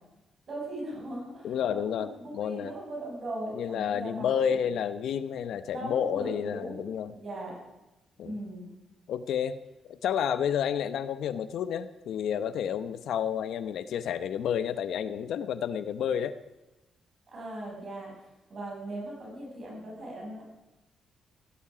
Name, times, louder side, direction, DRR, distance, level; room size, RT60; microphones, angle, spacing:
voice 1, 0.5-4.7 5.7-6.8 7.1-7.6 8.2-8.7 17.3-18.1 18.5-20.4, right 1 dB, 35° right, -3 dB, 6.8 m, -39 dB
voice 2, 1.4-2.7 3.5-7.1 8.2-8.4 9.1-9.6 9.9-16.4, left 8 dB, 75° left, 12 dB, 0.8 m, -30 dB
17.0 x 16.0 x 5.0 m, 1.0 s
wide cardioid pair, 170°, 0 cm